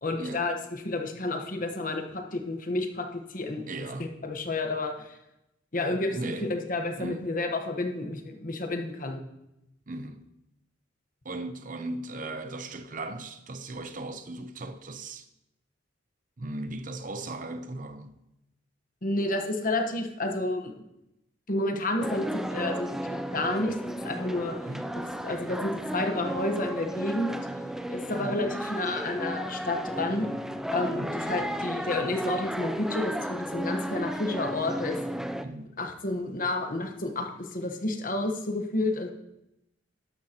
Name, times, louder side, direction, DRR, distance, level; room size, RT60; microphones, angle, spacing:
voice 1, 0.0-3.6 4.2-5.2 5.7-6.2 6.5-9.2 19.0-20.7 21.5-24.5 25.0-27.4 27.9-30.3 30.7-35.0 35.8-39.1, left 2 dB, 45° left, 1.2 m, -30 dB
voice 2, 3.7-4.1 5.9-6.5 7.0-7.2 9.9-10.2 11.2-15.3 16.4-18.1 24.6-25.0 28.1-28.4 30.9-31.2 35.4-35.7, right 2 dB, 45° right, 0.8 m, -37 dB
sound 1, 22.0-35.4, equal, 5° right, 0.4 m, -34 dB
12.5 x 12.0 x 3.0 m
head